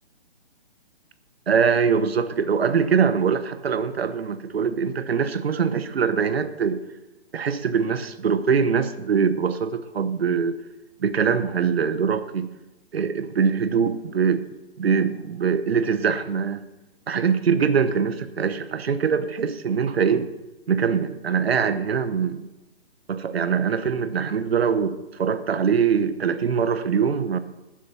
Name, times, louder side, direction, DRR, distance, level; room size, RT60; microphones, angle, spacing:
voice 1, 1.5-6.8 7.3-10.6 11.0-12.5 12.9-14.4 14.8-16.6 17.1-20.3 20.7-22.5 23.1-27.4, right 6 dB, 75° right, 12 dB, 1.0 m, -23 dB
11.5 x 7.5 x 5.7 m, 1.0 s
hypercardioid pair, 165°, 31 cm